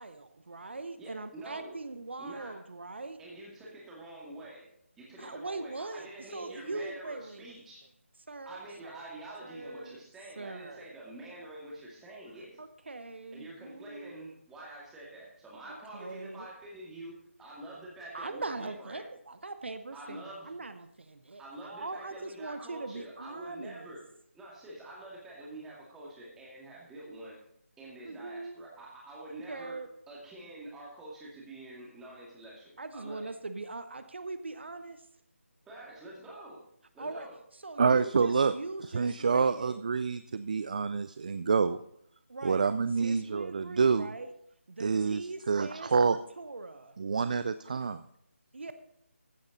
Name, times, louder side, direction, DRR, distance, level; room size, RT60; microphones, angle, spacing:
voice 1, 0.0-3.2 5.2-6.1 6.3-7.5 8.3-9.0 9.4-10.0 10.4-11.0 12.6-14.1 15.7-16.5 18.1-23.9 28.0-28.6 29.3-29.9 32.8-35.0 37.0-37.3 37.6-39.7 42.3-42.6 43.0-44.3 44.7-47.0 48.5-48.7, right 3 dB, 55° right, 10 dB, 0.8 m, -41 dB
voice 2, 1.0-1.8 2.2-2.6 3.2-4.7 5.0-7.8 8.4-12.6 13.3-19.0 19.9-20.5 21.4-24.0 24.3-27.4 27.8-33.3 35.7-36.6 36.9-37.4, right 1 dB, 5° right, -5 dB, 2.3 m, -46 dB
voice 3, 37.8-38.5 38.9-41.8 42.4-44.1 44.8-46.2 47.0-48.0, right 5 dB, 35° right, 13 dB, 0.4 m, -27 dB
15.0 x 8.7 x 4.0 m, 0.73 s
figure-of-eight pair, 155°, 7 cm